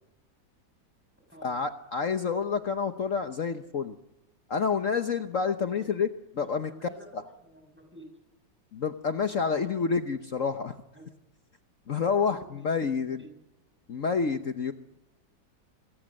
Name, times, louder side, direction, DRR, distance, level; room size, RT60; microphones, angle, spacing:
voice 1, 1.4-3.9 4.5-6.1 6.3-7.2 8.7-10.7 11.9-13.2 13.9-14.7, left 5 dB, 50° left, 7 dB, 1.2 m, -28 dB
voice 2, 6.3-8.1 9.4-9.6 10.9-11.1 12.2-12.7 13.0-13.3, right 1 dB, 5° right, 3 dB, 7.2 m, -50 dB
27.0 x 21.0 x 6.5 m, 1.0 s
omnidirectional pair, 1.9 m